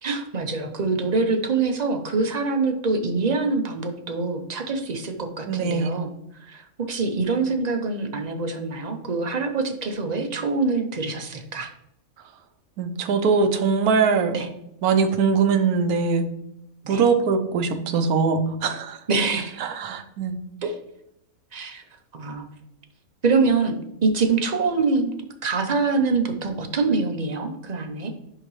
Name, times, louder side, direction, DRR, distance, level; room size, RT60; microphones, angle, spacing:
voice 1, 0.0-6.1 6.4-11.7 14.3-14.5 16.8-17.0 19.1-19.6 20.6-20.8 21.5-21.8 22.1-22.5 23.2-25.1 25.4-28.1, right 4 dB, 40° right, 6 dB, 0.6 m, -25 dB
voice 2, 5.5-6.0 12.8-14.3 14.8-16.3 16.9-19.0 19.6-20.4, right 5 dB, 80° right, 8 dB, 1.2 m, -22 dB
10.5 x 3.7 x 3.1 m, 0.79 s
omnidirectional pair, 1.6 m